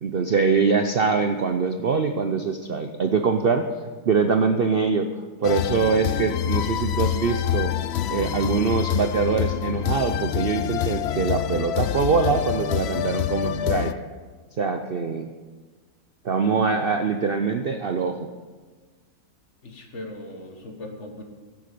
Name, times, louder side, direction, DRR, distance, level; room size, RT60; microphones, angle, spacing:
voice 1, 0.0-3.7 4.1-5.1 5.4-7.8 8.1-13.9 14.6-15.3 16.2-18.3, right 5 dB, 55° right, 7 dB, 0.7 m, -23 dB
sound 1, 5.4-13.9, left 12 dB, 80° left, 0.5 m, -26 dB
voice 2, 19.6-21.2, left 1 dB, 50° left, 3 dB, 1.9 m, -38 dB
16.5 x 7.9 x 6.8 m, 1.4 s
omnidirectional pair, 1.6 m